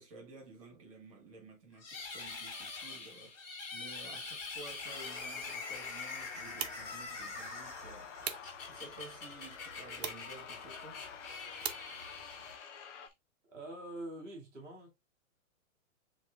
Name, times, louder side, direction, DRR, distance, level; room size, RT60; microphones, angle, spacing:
voice 1, 0.0-8.1 8.7-11.1, right 3 dB, 25° right, 1.3 m, -53 dB
sound 1, 1.8-13.1, left 4 dB, 45° left, 2.5 m, -44 dB
sound 2, 4.8-13.1, left 7 dB, 60° left, 0.6 m, -50 dB
sound 3, 6.2-12.6, right 7 dB, 50° right, 0.8 m, -46 dB
voice 2, 13.4-14.9, right 1 dB, 5° left, 0.5 m, -45 dB
7.4 x 3.0 x 2.3 m
hypercardioid pair, 175°, 41 cm